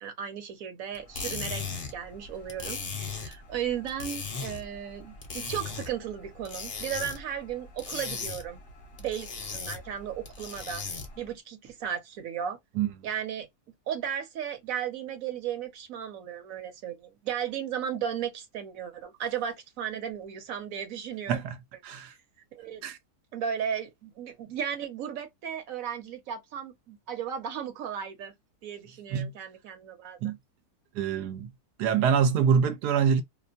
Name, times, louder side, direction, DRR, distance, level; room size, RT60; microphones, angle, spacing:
voice 1, 0.0-8.6 9.0-10.8 11.2-12.6 13.0-13.5 13.9-21.4 22.5-22.8 23.3-28.3 28.6-30.2, right 8 dB, 60° right, 1.2 m, -35 dB
sound 1, 0.9-11.3, left 5 dB, 45° left, 0.8 m, -38 dB
voice 2, 30.9-31.5 31.8-33.2, right 7 dB, 80° right, 1.2 m, -25 dB
2.9 x 2.1 x 2.5 m
omnidirectional pair, 1.7 m